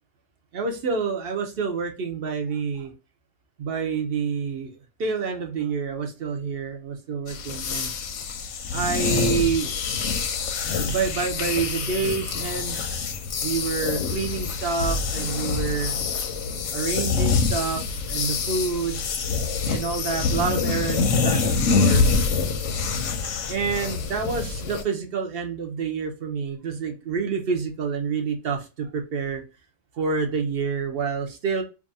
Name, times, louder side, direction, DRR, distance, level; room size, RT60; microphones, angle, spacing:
voice 1, 0.5-2.9 3.6-7.9 8.7-9.8 10.8-12.9 13.4-15.9 16.7-19.0 19.6-22.0 23.3-29.4 29.9-31.6, right 5 dB, 55° right, 4 dB, 0.9 m, -28 dB
sound 1, 7.3-24.8, left 4 dB, 90° left, 0.9 m, -26 dB
2.8 x 2.4 x 3.9 m, 0.30 s
omnidirectional pair, 1.2 m